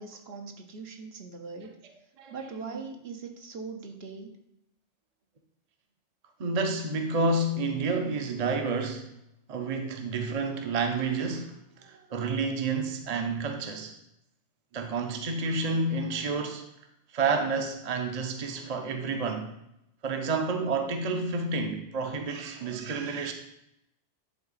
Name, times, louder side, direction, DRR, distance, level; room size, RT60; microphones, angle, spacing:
voice 1, 0.0-1.8 2.3-4.4, right 4 dB, 65° right, 4 dB, 1.0 m, -41 dB
voice 2, 1.6-2.8 6.4-9.1 9.5-13.9 14.7-16.7 17.1-19.5 20.0-23.3, right 3 dB, 40° right, 5 dB, 0.7 m, -30 dB
10.5 x 3.8 x 4.1 m, 0.80 s
omnidirectional pair, 1.2 m